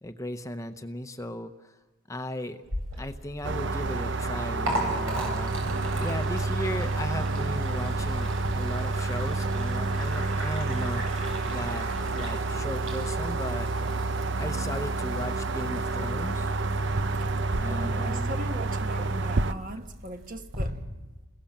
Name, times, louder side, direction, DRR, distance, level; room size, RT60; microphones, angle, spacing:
voice 1, 0.0-1.7 2.1-2.6 3.0-5.6 6.0-11.0 11.4-14.0 14.4-16.8 17.6-18.5, left 1 dB, 15° left, 0.9 m, -37 dB
Liquid, 2.6-20.6, right 1 dB, 85° right, 7.3 m, -39 dB
sound 1, 3.4-19.5, right 3 dB, 60° right, 0.8 m, -29 dB
voice 2, 17.6-20.8, right 1 dB, 40° right, 1.5 m, -39 dB
29.5 x 21.5 x 7.4 m
head